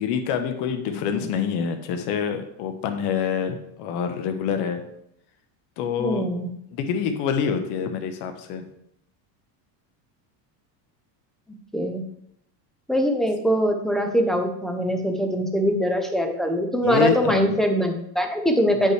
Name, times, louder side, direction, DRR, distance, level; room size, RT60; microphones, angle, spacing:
voice 1, 0.0-4.8 5.8-6.3 6.7-8.7 16.8-17.6, left 7 dB, 55° left, 7 dB, 1.0 m, -26 dB
voice 2, 6.0-6.5 11.7-12.0 12.9-18.9, equal, ahead, 4 dB, 0.6 m, -22 dB
8.3 x 5.5 x 3.3 m, 0.75 s
supercardioid pair, 140°, 47 cm